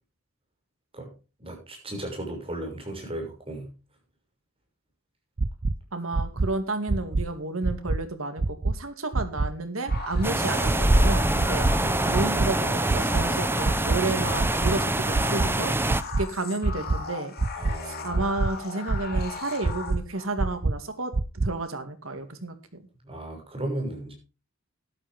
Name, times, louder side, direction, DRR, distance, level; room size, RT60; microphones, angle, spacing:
voice 1, 1.4-3.7 11.8-12.2 17.6-18.1 23.0-24.1, right 1 dB, 30° right, 1 dB, 6.3 m, -35 dB
sound 1, 5.4-5.7 6.1-6.5 6.9-7.2 7.6-8.0 8.4-8.7 9.1-9.5 9.9-10.2 10.6-11.0 11.4-11.7 12.1-12.5 12.9-13.2 13.6-14.0 14.4-14.7 15.1-15.5 15.9-16.2 16.6-17.0 17.4-17.7 18.1-18.5 18.9-19.2 19.6-20.0 20.4-20.7 21.1-21.5, right 3 dB, 45° right, 0.6 m, -24 dB
voice 2, 5.9-11.7 12.1-15.7 16.2-17.3 17.8-21.1 21.4-22.8, right 2 dB, 85° right, 8 dB, 2.2 m, -31 dB
sound 2, 9.9-20.2, left 4 dB, 50° left, 2.9 m, -38 dB
sound 3, 10.2-16.0, right 1 dB, 10° right, 0.8 m, -25 dB
13.5 x 12.0 x 3.5 m, 0.33 s
head